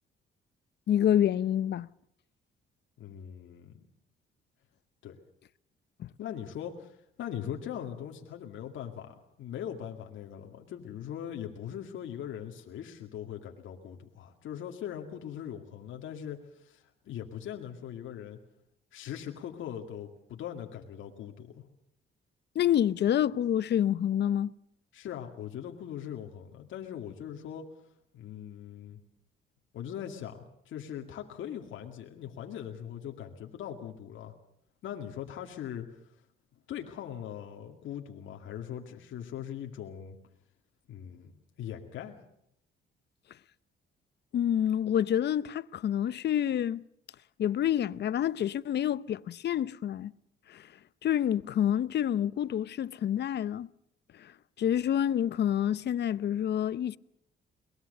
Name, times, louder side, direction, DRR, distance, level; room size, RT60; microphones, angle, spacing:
voice 1, 0.9-1.9 6.0-6.1 22.5-24.5 44.3-46.8 47.4-50.1 50.5-50.6 51.0-53.7 54.2-54.3 54.6-57.0, left 10 dB, 60° left, 0.7 m, -28 dB
voice 2, 3.0-3.9 5.0-5.2 6.2-18.4 18.9-21.7 24.9-27.7 28.1-29.0 29.7-34.3 34.8-36.0 36.7-40.2 40.9-42.2, left 9 dB, 75° left, 2.2 m, -41 dB
22.5 x 20.5 x 6.7 m
cardioid pair, 90°, 20 cm